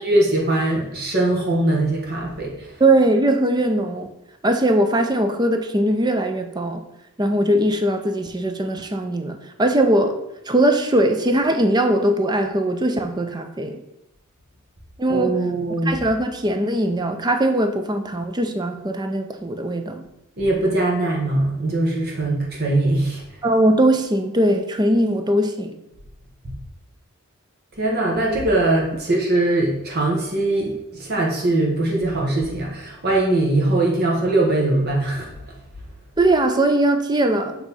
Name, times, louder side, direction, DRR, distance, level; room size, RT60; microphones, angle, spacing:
voice 1, 0.0-2.7 15.1-16.0 20.4-23.2 26.4-26.5 27.8-35.3, right 2 dB, 45° right, -2 dB, 1.2 m, -21 dB
voice 2, 2.8-4.1 4.4-6.8 7.2-10.2 10.5-13.8 15.0-15.4 15.8-20.0 23.4-25.8 36.2-37.6, right 1 dB, 20° right, 6 dB, 0.5 m, -20 dB
7.5 x 3.0 x 5.4 m, 0.88 s
head